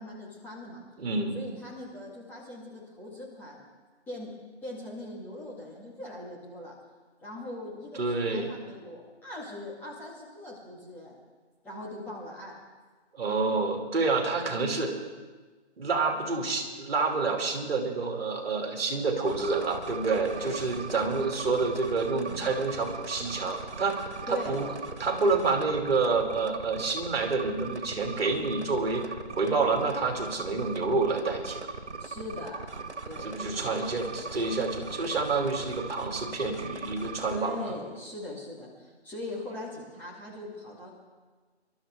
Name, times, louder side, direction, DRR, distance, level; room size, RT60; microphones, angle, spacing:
voice 1, 0.0-0.8 1.3-3.6 4.1-4.3 4.6-6.7 7.2-11.2 11.6-12.5 20.3-21.0 22.3-22.5 24.3-24.7 32.0-32.7 33.1-34.3 37.3-40.9, left 1 dB, 5° left, -8 dB, 2.0 m, -41 dB
voice 2, 1.0-1.4 8.0-8.5 13.1-14.9 15.8-31.7 33.2-37.7, right 3 dB, 60° right, 2 dB, 3.0 m, -28 dB
sound 1, 19.3-37.4, right 4 dB, 90° right, 1.8 m, -39 dB
27.5 x 12.5 x 3.7 m, 1.4 s
figure-of-eight pair, 160°, 34 cm